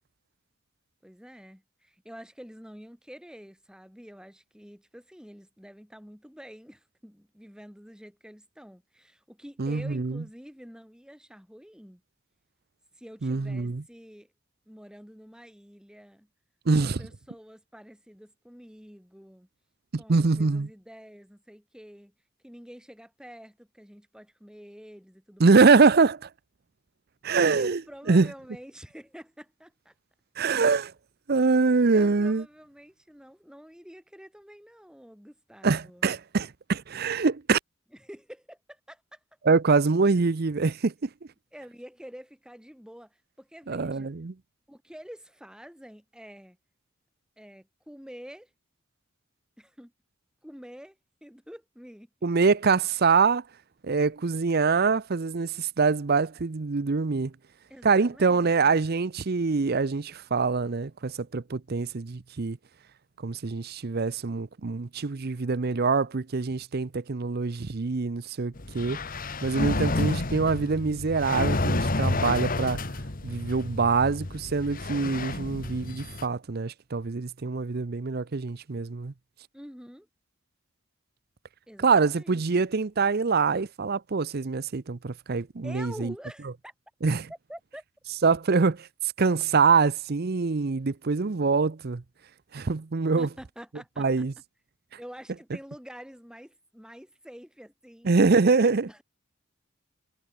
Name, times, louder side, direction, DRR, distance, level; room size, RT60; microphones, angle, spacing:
voice 1, 1.0-12.0 13.0-14.3 14.7-16.3 16.8-19.5 20.0-22.1 22.4-25.8 27.5-29.9 31.9-36.1 38.0-39.2 41.5-44.1 44.7-46.6 47.4-48.5 49.6-49.9 50.4-52.1 57.7-58.8 79.5-80.1 81.7-82.6 85.6-86.7 87.3-87.8 93.2-94.1 95.0-98.1 98.7-99.0, equal, 5° right, 6.0 m, -47 dB
voice 2, 9.6-10.2 13.2-13.8 16.7-17.0 19.9-20.7 25.4-26.3 27.2-27.8 28.1-28.3 30.4-30.9 31.3-32.4 35.6-37.6 39.4-41.1 43.7-44.3 52.2-53.4 53.8-57.3 57.8-62.6 63.2-69.0 69.4-72.8 73.2-79.1 81.8-86.1 87.0-87.3 88.2-88.9 89.2-92.0 92.5-93.3 94.0-94.3 98.0-98.9, right 4 dB, 50° right, 0.6 m, -24 dB
sound 1, 68.6-76.3, left 2 dB, 40° left, 1.5 m, -30 dB
head